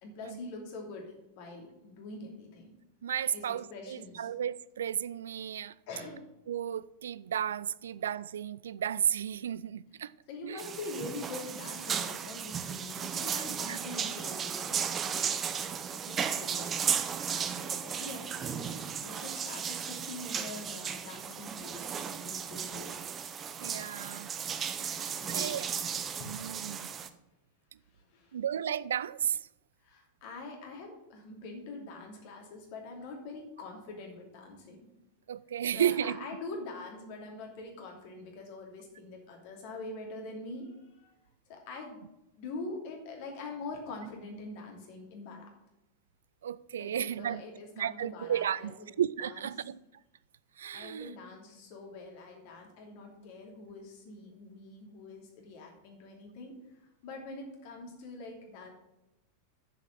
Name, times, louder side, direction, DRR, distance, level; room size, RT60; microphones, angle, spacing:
voice 1, 0.0-2.7 3.3-4.3 5.9-6.3 10.3-15.7 15.9-22.9 24.8-25.6 26.2-26.6 27.9-28.4 29.8-34.9 35.7-41.1 41.5-42.0 42.4-45.5 46.8-48.9 49.2-49.5 50.7-58.7, left 2 dB, 45° left, 2.8 m, -44 dB
voice 2, 3.0-5.7 6.5-10.1 10.4-10.6 13.2-13.8 23.6-24.3 24.8-25.0 25.3-25.7 26.2-26.9 28.3-29.4 35.3-36.2 46.4-47.4 47.8-49.8 50.6-51.1, right 9 dB, 65° right, 0.3 m, -33 dB
sound 1, 10.6-27.1, right 7 dB, 25° right, 0.7 m, -35 dB
7.4 x 7.1 x 7.6 m
figure-of-eight pair, 90°, 0 cm